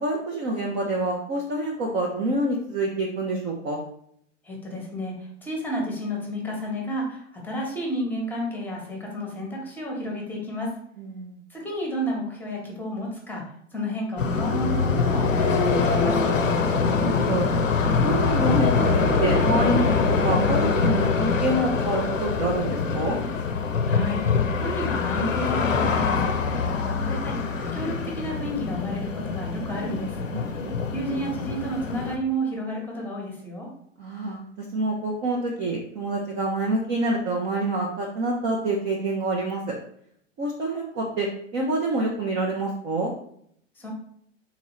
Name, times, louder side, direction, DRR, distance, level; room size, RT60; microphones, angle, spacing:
voice 1, 0.0-3.8 11.0-11.4 16.4-17.5 18.0-23.2 30.3-30.8 34.0-39.7 40.4-43.1, right 2 dB, 20° right, -2 dB, 0.3 m, -27 dB
voice 2, 4.4-10.7 11.5-13.4 13.7-16.2 23.9-24.2 24.6-30.2 30.9-33.7 43.8-43.9, equal, 5° left, -1 dB, 0.9 m, -31 dB
sound 1, 14.2-32.2, left 4 dB, 85° left, 0.6 m, -24 dB
3.7 x 3.0 x 3.0 m, 0.67 s
hypercardioid pair, 110°, 38 cm